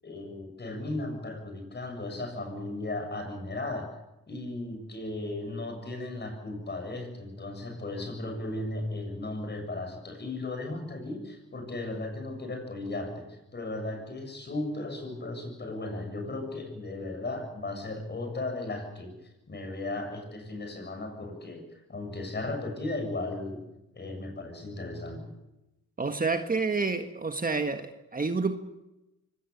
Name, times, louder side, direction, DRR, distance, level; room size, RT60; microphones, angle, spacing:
voice 1, 0.0-4.0 4.3-19.1 19.5-23.6 23.9-25.3, left 2 dB, 35° left, 5 dB, 7.5 m, -36 dB
voice 2, 26.0-28.6, right 4 dB, 30° right, 7 dB, 1.6 m, -29 dB
24.5 x 17.5 x 8.3 m, 0.95 s
cardioid pair, 80°, 31 cm